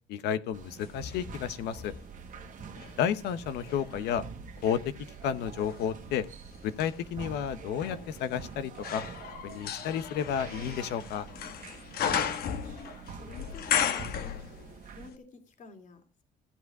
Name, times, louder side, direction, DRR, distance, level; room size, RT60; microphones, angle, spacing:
voice 1, 0.1-1.9 3.0-4.2 4.6-4.9 5.2-6.3 6.6-9.0 9.4-11.3, left 8 dB, 80° left, 13 dB, 1.0 m, -31 dB
sound 1, 0.5-15.1, right 6 dB, 50° right, 1.5 m, -46 dB
sound 2, 0.8-3.0 3.5-14.9 15.1-15.2, left 8 dB, 65° left, 1.4 m, -36 dB
voice 2, 12.6-14.4 14.9-16.2, left 4 dB, 50° left, 6 dB, 2.8 m, -49 dB
15.0 x 8.2 x 4.8 m, 0.33 s
cardioid pair, 110°, 17 cm